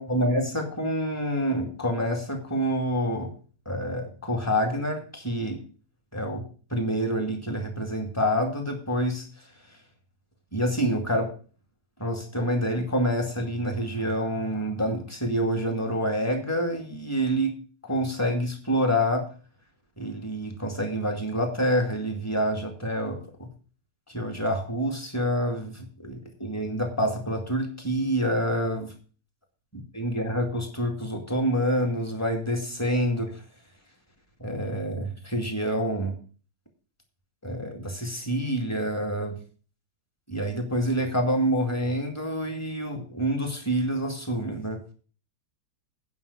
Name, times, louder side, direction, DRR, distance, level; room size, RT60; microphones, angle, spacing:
voice 1, 0.0-3.3 3.7-5.6 6.1-6.4 6.7-9.3 10.5-11.3 12.0-17.5 17.8-19.3 20.0-23.5 24.1-28.9 29.7-33.4 34.4-36.1 37.4-39.4 40.3-44.8, equal, 10° left, 2 dB, 2.2 m, -27 dB
9.6 x 5.7 x 8.2 m, 0.39 s
omnidirectional pair, 2.0 m